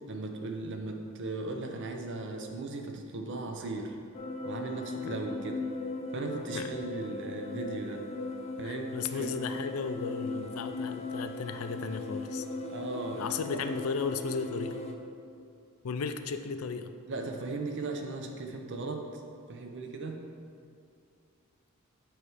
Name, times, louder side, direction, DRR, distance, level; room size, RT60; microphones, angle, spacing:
voice 1, 0.1-4.0 4.4-5.6 6.1-8.0 8.6-9.4 12.6-13.2 13.5-13.6 17.1-19.2 19.5-20.2, right 3 dB, 60° right, 3 dB, 0.7 m, -37 dB
sound 1, 4.1-14.9, left 2 dB, 30° left, 0.5 m, -38 dB
voice 2, 8.6-12.4 13.1-14.8 15.8-16.9, left 5 dB, 85° left, 8 dB, 0.4 m, -35 dB
7.6 x 3.2 x 6.3 m, 2.4 s
head